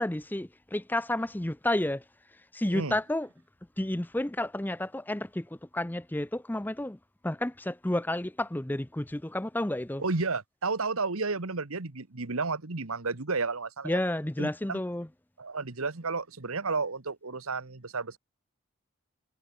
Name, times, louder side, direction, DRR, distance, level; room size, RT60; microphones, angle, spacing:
voice 1, 0.0-2.0 2.5-3.3 3.8-5.5 5.7-7.0 7.2-10.0 13.8-15.1, left 1 dB, 10° left, 0.5 m, -31 dB
voice 2, 2.6-3.0 10.0-14.0 14.4-14.8 15.4-18.2, right 4 dB, 85° right, 1.5 m, -32 dB
head